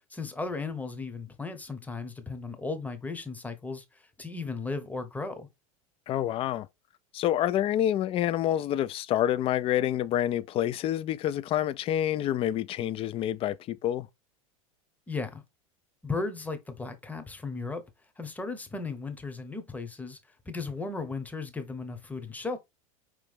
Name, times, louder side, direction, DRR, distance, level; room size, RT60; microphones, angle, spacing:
voice 1, 0.1-5.5 15.1-15.4 16.0-17.8 18.2-20.2 20.5-22.6, left 3 dB, 10° left, 1.0 m, -36 dB
voice 2, 6.1-6.7 7.1-14.1, left 11 dB, 30° left, 0.4 m, -27 dB
4.9 x 3.1 x 3.4 m
hypercardioid pair, 85°, 18 cm